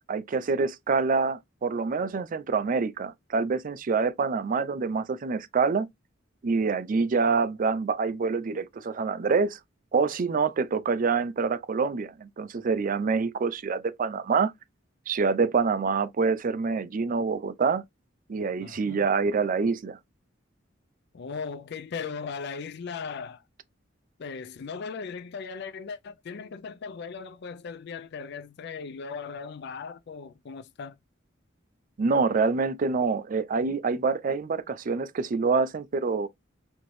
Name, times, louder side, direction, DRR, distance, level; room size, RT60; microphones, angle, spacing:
voice 1, 0.1-5.9 6.4-9.6 9.9-14.5 15.1-17.8 18.3-20.0 32.0-36.3, right 4 dB, 45° right, 0.4 m, -26 dB
voice 2, 18.6-19.0 21.1-23.4 24.2-31.0, left 5 dB, 60° left, 0.4 m, -38 dB
4.3 x 2.8 x 3.1 m
head